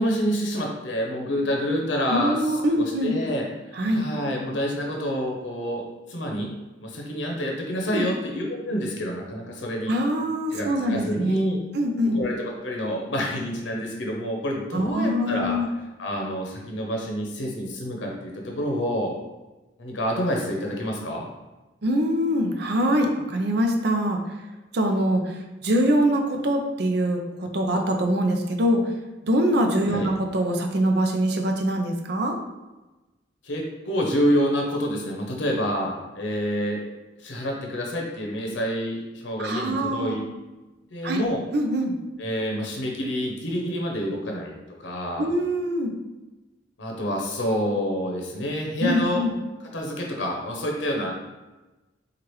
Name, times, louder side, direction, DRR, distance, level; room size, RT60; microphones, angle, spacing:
voice 1, 0.0-3.5 3.9-5.8 6.1-6.5 6.8-9.9 10.5-11.6 12.0-15.6 16.0-19.1 19.8-21.3 29.9-30.1 33.4-36.8 37.2-40.2 40.9-41.4 42.2-44.5 44.8-45.3 46.8-49.2 49.7-51.1, equal, 75° left, 0 dB, 0.7 m, -28 dB
voice 2, 2.1-3.2 3.8-4.0 7.9-8.1 9.9-12.2 14.7-15.7 21.8-24.2 24.7-25.2 25.6-28.8 29.2-32.4 39.4-40.2 41.0-41.2 41.5-41.9 45.2-45.9 48.8-49.3, equal, 60° right, 3 dB, 0.5 m, -23 dB
4.5 x 2.4 x 3.1 m, 1.1 s
head